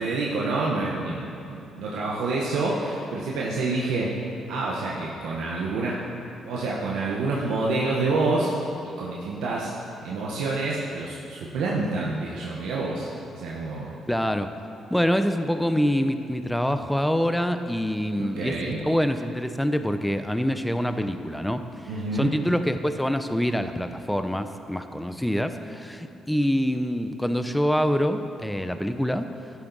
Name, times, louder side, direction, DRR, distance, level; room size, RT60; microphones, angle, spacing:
voice 1, 0.0-4.1 4.5-6.0 6.4-9.7 10.0-13.9 18.2-18.8 21.9-22.3, right 3 dB, 90° right, -4 dB, 1.0 m, -28 dB
voice 2, 14.1-14.5 14.9-29.3, equal, 5° left, 8 dB, 0.6 m, -25 dB
12.5 x 7.1 x 4.0 m, 2.7 s
cardioid pair, 90°, 0 cm